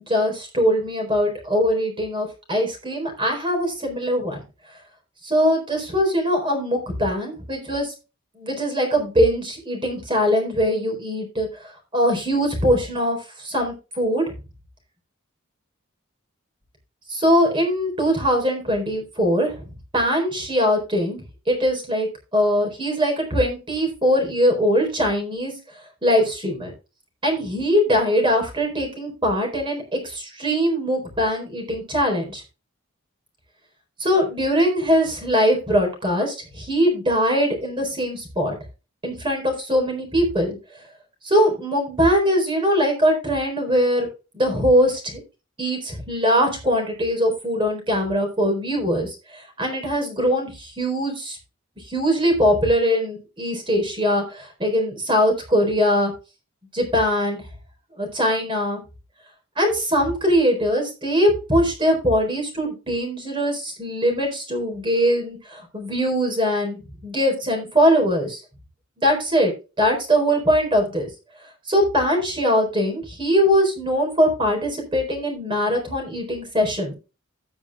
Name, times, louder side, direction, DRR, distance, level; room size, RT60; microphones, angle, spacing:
voice 1, 0.1-4.4 5.2-7.9 8.4-11.5 11.9-14.2 17.1-19.5 19.9-25.5 26.0-26.7 27.2-32.4 34.0-38.5 39.0-40.6 41.2-44.1 44.3-45.2 45.6-51.4 51.9-56.1 56.7-57.4 58.0-58.8 59.6-68.4 69.0-69.5 69.8-71.1 71.7-76.9, equal, 25° right, 2 dB, 4.1 m, -21 dB
17.5 x 6.1 x 2.4 m, 0.31 s
head